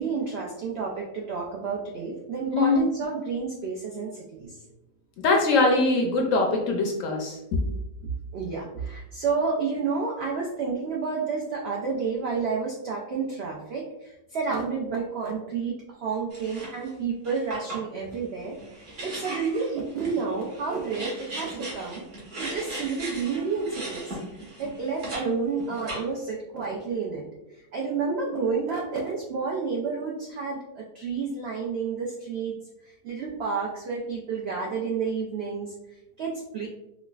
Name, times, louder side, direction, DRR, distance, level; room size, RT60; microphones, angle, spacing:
voice 1, 0.0-4.5 8.3-22.0 22.4-24.2 24.6-27.3 27.7-32.6 32.8-35.7 36.2-36.7, right 5 dB, 75° right, -2 dB, 0.5 m, -30 dB
voice 2, 5.2-7.6, left 3 dB, 70° left, 1 dB, 0.8 m, -22 dB
sound 1, 16.3-16.9 17.2-25.3 25.6-26.3, right 1 dB, 55° right, 1.4 m, -38 dB
4.7 x 2.0 x 2.3 m, 0.91 s
omnidirectional pair, 1.7 m